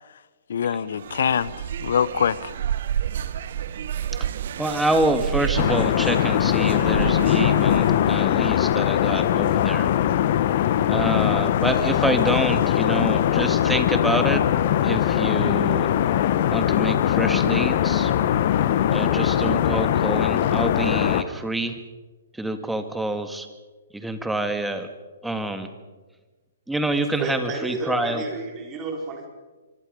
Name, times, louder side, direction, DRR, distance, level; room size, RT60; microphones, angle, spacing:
voice 1, 0.5-2.5, left 7 dB, 65° left, 18 dB, 1.0 m, -24 dB
sound 1, 0.9-8.1, right 9 dB, 55° right, 1.2 m, -30 dB
voice 2, 4.6-9.9 10.9-14.4 14.8-15.9 16.5-18.1 18.9-21.8 22.4-23.5 23.9-24.9 25.2-25.7 26.7-28.2, right 2 dB, 5° right, 8 dB, 1.9 m, -27 dB
sound 2, 5.6-21.2, left 10 dB, 50° left, 1.3 m, -21 dB
voice 3, 27.2-29.3, right 3 dB, 25° right, 2 dB, 4.6 m, -31 dB
25.0 x 24.5 x 5.4 m, 1.3 s
figure-of-eight pair, 130°, 0 cm